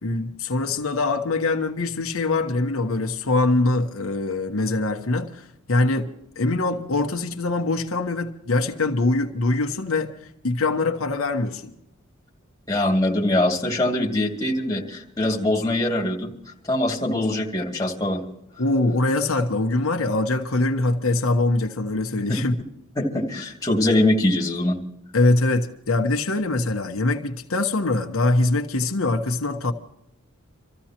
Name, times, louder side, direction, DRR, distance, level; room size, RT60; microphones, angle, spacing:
voice 1, 0.0-10.1 10.4-11.7 18.6-22.5 25.1-29.7, left 2 dB, 85° left, 1.2 m, -23 dB
voice 2, 12.7-16.3 16.7-18.2 23.0-24.8, left 1 dB, 15° left, 2.5 m, -22 dB
26.5 x 14.5 x 2.9 m
head